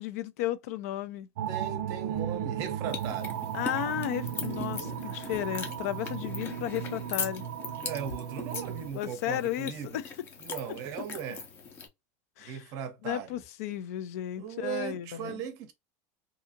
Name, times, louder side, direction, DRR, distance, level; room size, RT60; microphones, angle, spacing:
voice 1, 0.0-1.3 3.5-7.4 8.9-10.0 12.4-12.6 13.0-15.4, left 12 dB, 75° left, 0.5 m, -34 dB
sound 1, 1.4-8.9, right 9 dB, 90° right, 0.4 m, -35 dB
voice 2, 1.5-3.4 7.7-10.0 10.4-11.5 12.4-13.4 14.4-15.7, right 8 dB, 40° right, 0.6 m, -38 dB
sound 2, 2.9-11.9, left 5 dB, 25° left, 0.6 m, -40 dB
2.7 x 2.5 x 2.6 m
supercardioid pair, 170°, 8 cm